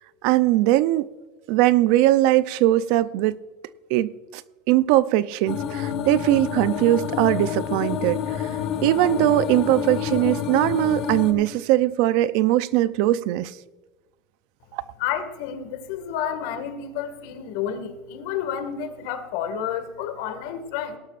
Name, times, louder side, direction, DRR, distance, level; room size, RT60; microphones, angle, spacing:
voice 1, 0.2-1.1 1.5-3.4 3.9-4.4 4.7-8.5 8.8-13.5 14.7-14.8, right 15 dB, 65° right, 0.5 m, -20 dB
sound 1, 5.5-11.3, left 8 dB, 50° left, 1.5 m, -28 dB
voice 2, 15.0-21.0, left 8 dB, 75° left, 1.9 m, -30 dB
18.0 x 12.0 x 2.5 m
supercardioid pair, 135°, 0 cm